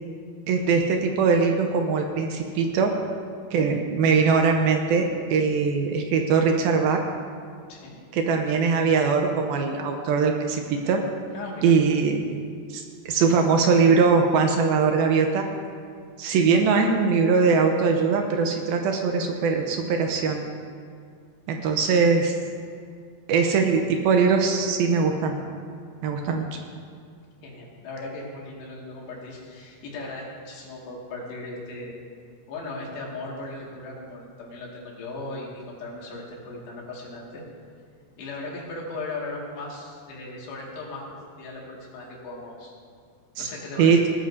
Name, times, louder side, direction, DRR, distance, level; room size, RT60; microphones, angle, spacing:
voice 1, 0.5-2.9 3.5-7.0 8.1-11.0 11.6-12.2 12.7-12.8 13.1-15.4 16.2-20.5 21.5-22.4 23.3-25.4 26.0-26.5 43.4-43.5 43.8-44.0, right 5 dB, 75° right, 3 dB, 2.4 m, -21 dB
voice 2, 11.3-11.8 27.4-32.0 32.5-37.4 38.2-42.7 43.4-44.0, left 2 dB, 85° left, -3 dB, 4.4 m, -37 dB
19.0 x 13.0 x 2.7 m, 2.1 s
omnidirectional pair, 4.7 m